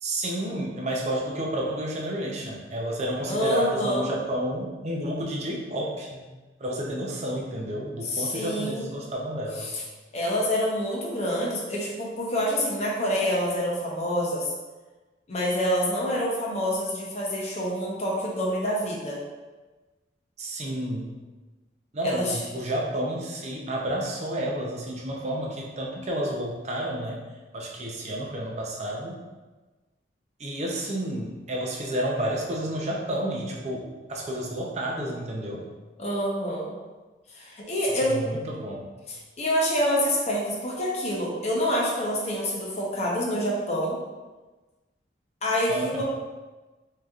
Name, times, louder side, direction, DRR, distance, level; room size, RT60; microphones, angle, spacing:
voice 1, 0.0-6.2 6.6-9.7 20.4-21.1 21.9-27.2 27.5-29.2 30.4-35.7 38.0-38.9 45.7-46.0, right 1 dB, 40° right, -2 dB, 0.6 m, -30 dB
voice 2, 3.3-4.1 8.0-8.9 9.6-9.8 10.1-14.5 15.3-19.2 22.0-22.4 36.0-36.7 37.3-38.2 39.4-44.0 45.4-46.0, equal, 40° left, -4 dB, 0.7 m, -27 dB
4.8 x 2.8 x 2.4 m, 1.2 s
head